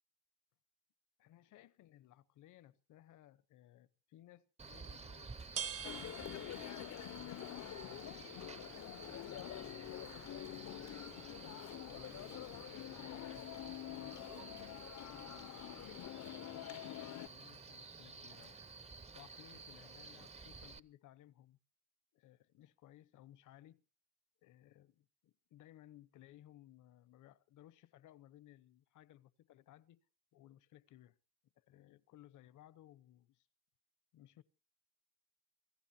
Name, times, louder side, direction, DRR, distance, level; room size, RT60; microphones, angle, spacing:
voice 1, 1.2-5.4 5.7-6.5 6.9-11.0 11.2-14.4 15.0-21.6 22.1-23.8 24.4-24.9 25.2-30.0 30.3-31.2 31.6-33.5 34.1-34.4, left 13 dB, 85° left, 1.0 m, -61 dB
Male speech man speaking, 4.6-20.8, right 4 dB, 20° right, 0.8 m, -53 dB
sound 1, 4.6-16.1, right 7 dB, 50° right, 0.9 m, -52 dB
sound 2, 5.8-17.3, left 14 dB, 65° left, 0.7 m, -47 dB
27.5 x 15.0 x 2.8 m
cardioid pair, 90°, 30 cm